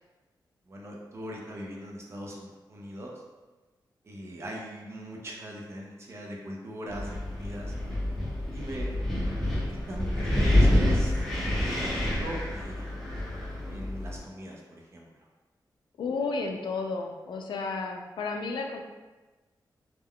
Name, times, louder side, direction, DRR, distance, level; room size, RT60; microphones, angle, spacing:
voice 1, 0.7-3.1 4.0-7.7 8.5-8.9 9.7-11.2 11.6-13.0 13.7-15.1, right 1 dB, 35° right, -1 dB, 0.5 m, -40 dB
Wind, 6.9-14.2, left 1 dB, 5° left, 0.8 m, -27 dB
voice 2, 16.0-18.8, left 4 dB, 85° left, 3 dB, 0.3 m, -32 dB
3.5 x 2.2 x 2.2 m, 1.2 s
wide cardioid pair, 170°, 8 cm